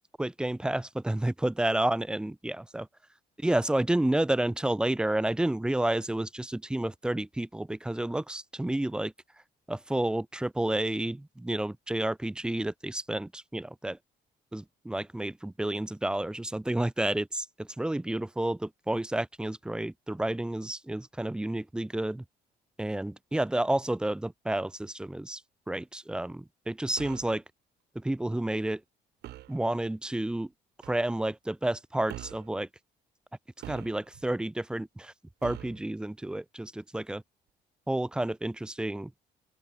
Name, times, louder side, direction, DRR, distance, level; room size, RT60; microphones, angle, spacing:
voice 1, 0.2-2.9 3.4-9.1 9.7-14.0 14.5-22.2 22.8-25.4 25.7-27.4 28.0-28.8 29.5-30.5 30.9-32.7 33.7-35.1 35.4-37.2 37.9-39.1, right 1 dB, 5° right, 0.4 m, -30 dB
sound 1, 27.0-27.4 29.2-29.6 30.8-31.1 32.1-32.5 33.6-34.3 35.4-35.8, right 15 dB, 75° right, 2.2 m, -43 dB
open air
cardioid pair, 110°, 17 cm